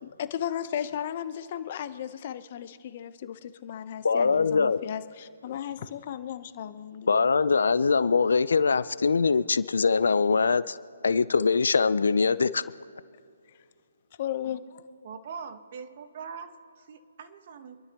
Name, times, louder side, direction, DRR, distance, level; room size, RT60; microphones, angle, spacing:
voice 1, 0.0-7.2 14.2-14.8, left 10 dB, 40° left, 12 dB, 0.9 m, -35 dB
voice 2, 4.0-4.8 7.1-10.8 11.0-12.6, left 5 dB, 70° left, 17 dB, 0.5 m, -23 dB
voice 3, 15.0-17.8, right 6 dB, 45° right, 8 dB, 1.3 m, -42 dB
27.0 x 12.5 x 3.0 m, 2.3 s
figure-of-eight pair, 140°, 0 cm